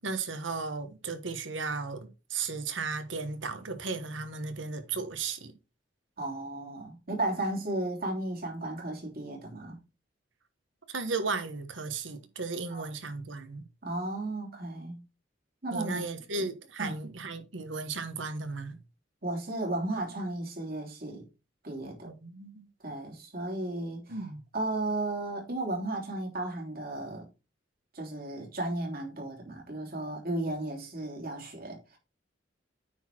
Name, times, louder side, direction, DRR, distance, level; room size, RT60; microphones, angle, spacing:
voice 1, 0.0-5.5 10.9-13.6 15.7-18.8 22.1-22.7 24.1-24.4, right 4 dB, 80° right, 1.4 m, -35 dB
voice 2, 6.2-9.8 12.7-12.9 13.8-15.0 15.6-16.0 16.8-16.9 19.2-21.2 21.6-22.1 22.8-24.2 24.5-27.3 27.9-32.0, right 2 dB, 55° right, 3.2 m, -34 dB
9.2 x 4.3 x 4.5 m
head